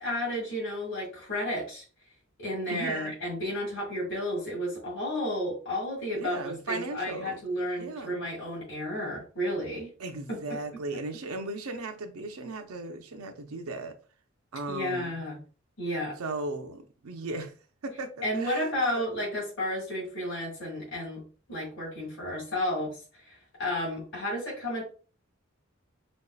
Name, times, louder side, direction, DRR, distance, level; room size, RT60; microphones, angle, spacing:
voice 1, 0.0-1.8 2.4-9.9 10.3-10.8 14.7-15.4 15.8-16.2 18.2-21.2 21.5-24.8, left 1 dB, 60° left, 2.0 m, -32 dB
voice 2, 2.7-3.1 6.1-7.4 7.8-8.2 10.0-13.9 14.5-15.1 16.2-17.5 17.8-18.7 18.9-19.0, right 2 dB, 85° right, 0.6 m, -36 dB
5.3 x 2.3 x 2.3 m
head